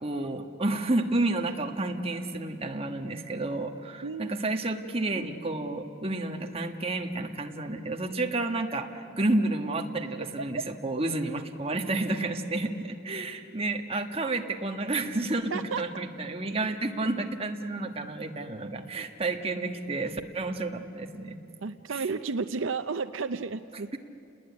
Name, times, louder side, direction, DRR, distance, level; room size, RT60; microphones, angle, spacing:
voice 1, 0.0-15.5 15.8-21.4 21.9-22.0, right 2 dB, 30° right, 4 dB, 1.5 m, -30 dB
voice 2, 4.0-4.4 10.2-10.3 15.5-15.8 21.6-23.9, right 4 dB, 65° right, 10 dB, 0.6 m, -32 dB
29.0 x 20.5 x 9.8 m, 2.8 s
head